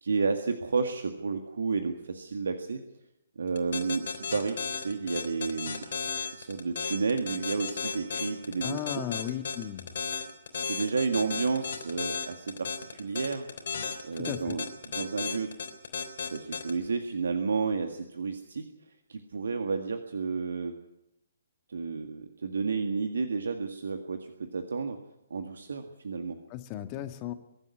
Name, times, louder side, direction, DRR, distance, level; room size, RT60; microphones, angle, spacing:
voice 1, 0.0-2.8 3.3-5.8 6.3-9.0 10.5-13.4 14.0-14.6 14.9-15.5 16.2-18.7 19.1-20.7 21.7-25.0 25.3-26.4, right 4 dB, 65° right, 6 dB, 1.8 m, -31 dB
sound 1, 3.6-16.7, left 6 dB, 60° left, 3.4 m, -34 dB
voice 2, 8.6-9.9 14.1-14.6 26.5-27.3, left 12 dB, 30° left, 9 dB, 1.6 m, -35 dB
23.5 x 12.0 x 9.9 m, 0.86 s
figure-of-eight pair, 130°, 0 cm